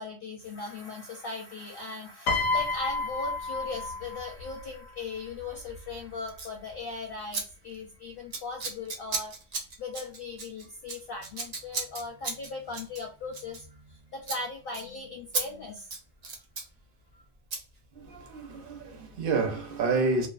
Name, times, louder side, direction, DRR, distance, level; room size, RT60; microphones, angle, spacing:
voice 1, 0.0-15.9 17.1-17.2, left 3 dB, 60° left, 0.6 m, -39 dB
Piano, 2.3-4.6 5.7-5.9, left 3 dB, 85° left, 1.0 m, -30 dB
Scissors, 6.3-6.6 7.3-7.4 7.7-8.0 8.3-14.0 14.2-14.4 14.7-14.8 15.3-15.4 15.8-16.7 17.5-17.6, right 4 dB, 85° right, 0.3 m, -35 dB
voice 2, 17.9-20.3, right 3 dB, 55° right, 0.7 m, -29 dB
2.5 x 2.3 x 2.3 m
omnidirectional pair, 1.4 m